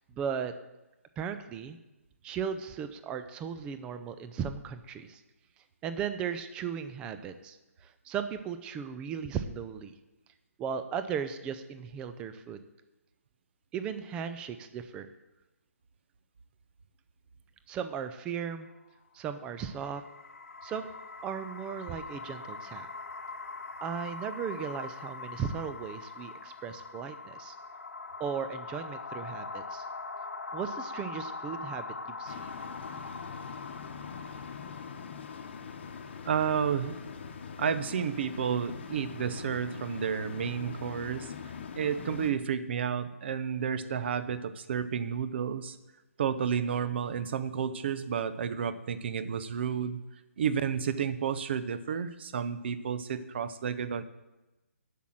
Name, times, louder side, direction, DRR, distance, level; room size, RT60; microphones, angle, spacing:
voice 1, 0.1-0.5 1.2-1.8 2.2-5.2 5.8-9.9 10.6-12.6 13.7-15.1 17.7-18.7 19.1-20.0 20.6-20.9 21.2-22.9 23.8-27.5 28.2-29.9 30.5-32.5, right 7 dB, 10° right, 10 dB, 0.4 m, -36 dB
sound 1, 19.5-36.7, left 3 dB, 80° left, 0.9 m, -42 dB
sound 2, 32.2-42.3, left 6 dB, 45° left, 1.0 m, -43 dB
voice 2, 36.2-37.0 37.6-41.3 41.8-45.8 46.2-50.0 50.4-54.0, right 7 dB, 45° right, 13 dB, 0.7 m, -31 dB
8.2 x 6.0 x 7.7 m, 1.0 s
hypercardioid pair, 155°, 8 cm